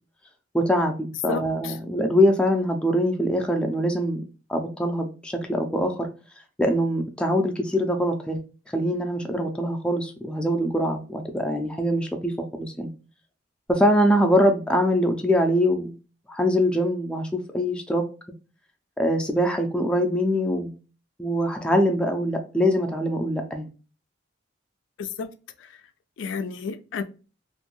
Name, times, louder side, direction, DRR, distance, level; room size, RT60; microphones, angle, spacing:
voice 1, 0.5-4.2 4.5-6.1 6.6-8.4 8.7-12.9 13.7-16.0 16.3-18.1 19.0-20.8 21.2-23.7, equal, 5° left, 0.3 m, -23 dB
voice 2, 1.3-1.7 25.0-25.3 25.6-25.7 26.2-27.0, left 5 dB, 85° left, 0.4 m, -32 dB
2.5 x 2.2 x 3.0 m
head